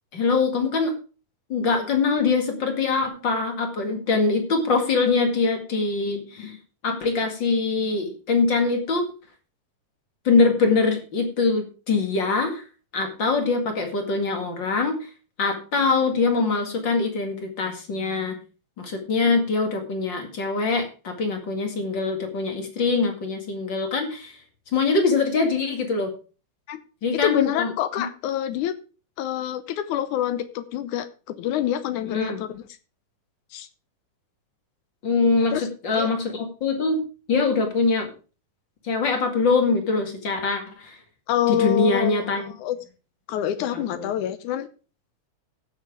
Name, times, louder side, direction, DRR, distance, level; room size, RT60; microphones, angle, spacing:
voice 1, 0.1-0.9 1.5-6.6 6.8-9.0 10.2-12.6 12.9-15.0 15.4-18.4 18.8-24.3 24.7-26.1 27.0-27.7 28.0-28.1 32.1-32.4 35.0-35.5 35.8-37.0 37.3-38.1 38.8-41.0 41.5-42.4 43.9-44.1, left 4 dB, 40° left, 4 dB, 2.4 m, -23 dB
voice 2, 27.2-28.7 29.2-32.7 33.5-33.7 35.5-36.1 41.3-42.8 43.3-44.7, left 11 dB, 75° left, 12 dB, 2.2 m, -26 dB
15.5 x 6.5 x 4.8 m, 0.35 s
omnidirectional pair, 3.7 m